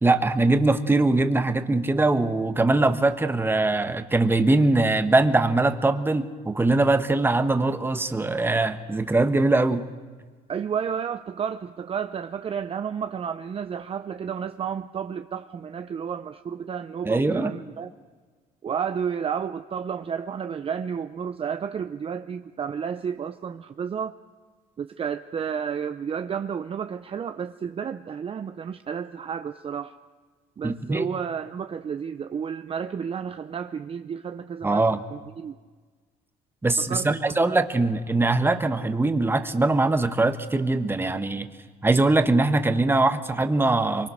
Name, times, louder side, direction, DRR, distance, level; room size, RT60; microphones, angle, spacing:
voice 1, 0.0-9.9 17.0-17.5 30.6-31.1 34.6-35.0 36.6-41.5 41.8-44.1, right 2 dB, 15° right, 9 dB, 1.4 m, -22 dB
voice 2, 10.5-17.9 18.6-24.2 24.8-29.9 30.6-34.8 35.1-35.6 36.8-37.6, right 7 dB, 35° right, 9 dB, 0.7 m, -31 dB
24.5 x 23.5 x 6.5 m, 1.4 s
cardioid pair, 110°, 17 cm